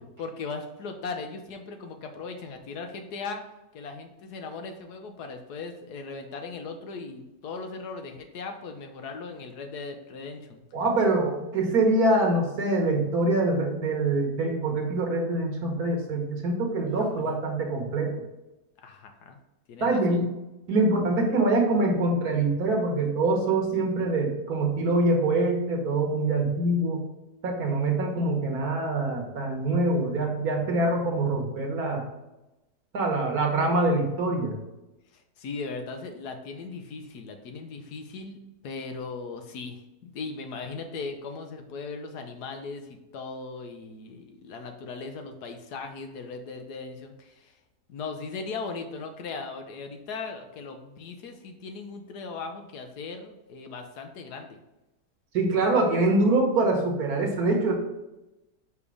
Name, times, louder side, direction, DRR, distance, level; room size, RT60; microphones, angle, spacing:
voice 1, 0.2-3.4 3.7-10.6 16.9-17.2 18.8-19.4 19.7-20.3 35.1-38.4 38.6-47.5 47.9-54.6, left 4 dB, 70° left, 5 dB, 1.3 m, -38 dB
voice 2, 10.7-18.1 19.8-20.3 20.7-27.0 27.4-32.1 32.9-34.5 55.3-57.7, right 2 dB, 65° right, 1 dB, 1.6 m, -24 dB
5.1 x 5.1 x 4.8 m, 0.97 s
omnidirectional pair, 1.8 m